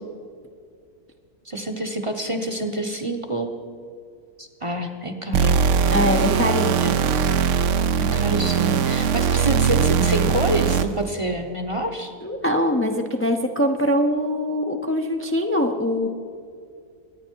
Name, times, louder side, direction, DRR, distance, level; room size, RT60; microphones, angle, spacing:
voice 1, 1.4-3.5 4.4-5.6 6.8-7.1 8.0-12.1, right 1 dB, 25° right, 4 dB, 0.8 m, -27 dB
sound 1, 5.3-11.1, right 7 dB, 65° right, 0.9 m, -20 dB
voice 2, 5.9-6.7 12.2-16.1, equal, 15° left, 3 dB, 0.5 m, -22 dB
23.5 x 9.7 x 4.6 m, 2.2 s
omnidirectional pair, 1.6 m